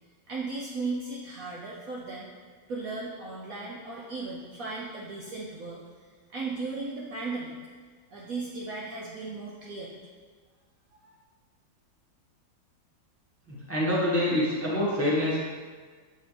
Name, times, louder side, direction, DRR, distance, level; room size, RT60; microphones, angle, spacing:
voice 1, 0.3-2.3 2.7-7.5 8.1-10.0 10.9-11.2, right 3 dB, 65° right, -5 dB, 0.9 m, -36 dB
voice 2, 13.5-15.4, left 1 dB, 10° left, -7 dB, 0.8 m, -26 dB
7.9 x 3.7 x 3.3 m, 1.5 s
omnidirectional pair, 2.1 m